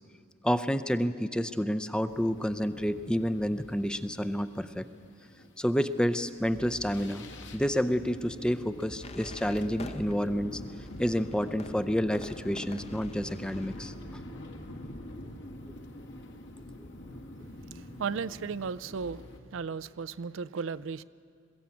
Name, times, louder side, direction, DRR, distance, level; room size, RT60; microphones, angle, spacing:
voice 1, 0.4-4.9 5.6-7.3 7.5-10.6 11.0-13.9, equal, 5° left, 11 dB, 0.5 m, -29 dB
sound 1, 2.1-19.4, left 1 dB, 60° left, 1.7 m, -45 dB
sound 2, 9.0-13.9, left 3 dB, 30° left, 0.8 m, -49 dB
voice 2, 17.7-19.2 19.5-21.0, right 5 dB, 65° right, 16 dB, 0.4 m, -35 dB
21.5 x 15.0 x 8.5 m, 2.5 s
head